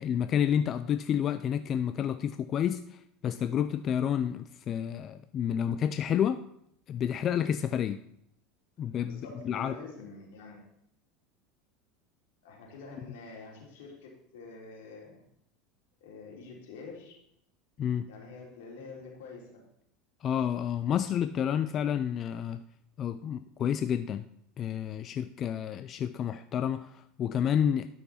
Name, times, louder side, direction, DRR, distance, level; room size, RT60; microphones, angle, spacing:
voice 1, 0.0-6.4 6.9-8.0 8.8-9.7 17.8-18.1 20.2-22.6 23.0-24.3 24.6-27.9, left 9 dB, 40° left, 0.4 m, -30 dB
voice 2, 9.0-10.7 12.4-15.2 16.0-17.2 18.1-19.6, left 3 dB, 80° left, 3.3 m, -47 dB
12.5 x 5.8 x 4.2 m
supercardioid pair, 115°, 0 cm